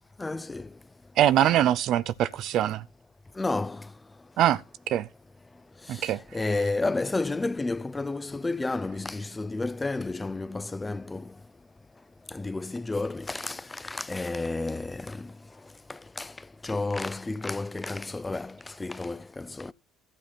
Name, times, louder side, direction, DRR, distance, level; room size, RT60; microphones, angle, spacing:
voice 1, 0.2-0.7 3.4-3.8 6.3-11.2 12.3-15.3 15.9-16.3 16.6-19.7, left 3 dB, 15° left, 0.7 m, -31 dB
voice 2, 1.2-2.8 4.4-4.6 4.9-5.1 5.9-6.2, right 11 dB, 65° right, 0.6 m, -23 dB
12.5 x 8.3 x 4.2 m
supercardioid pair, 85°, 0 cm